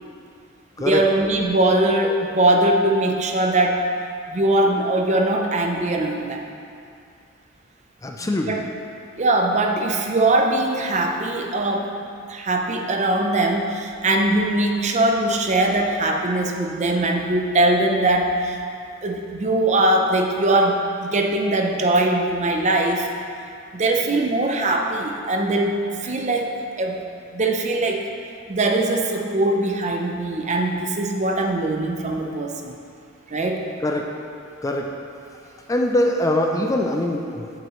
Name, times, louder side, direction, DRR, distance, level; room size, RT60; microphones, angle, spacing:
voice 1, 0.8-3.8 4.3-6.4 8.2-8.7 9.2-11.9 12.3-18.6 19.0-23.1 23.7-27.0 27.3-28.0 28.5-32.7 33.3-33.6, right 2 dB, 35° right, 2 dB, 0.6 m, -21 dB
voice 2, 8.0-8.6 33.8-34.1 34.6-34.9 35.7-37.5, left 1 dB, 15° left, 2 dB, 0.4 m, -22 dB
8.5 x 7.6 x 3.1 m, 2.4 s
head